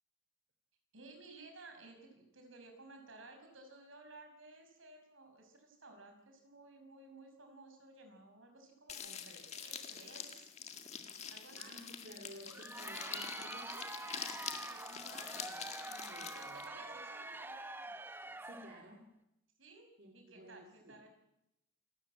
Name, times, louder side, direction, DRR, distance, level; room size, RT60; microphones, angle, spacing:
voice 1, 0.9-10.5 11.3-11.7 14.3-17.6 19.6-19.9 20.1-21.1, right 2 dB, 75° right, 4 dB, 5.9 m, -56 dB
sound 1, 8.9-16.7, left 7 dB, 35° left, 1.8 m, -46 dB
voice 2, 11.6-13.9 16.1-16.7 18.4-19.1 20.0-21.0, equal, 50° right, 3 dB, 2.8 m, -54 dB
Crowd, 12.3-18.9, right 2 dB, 10° right, 0.8 m, -46 dB
27.5 x 14.0 x 8.9 m, 0.86 s
head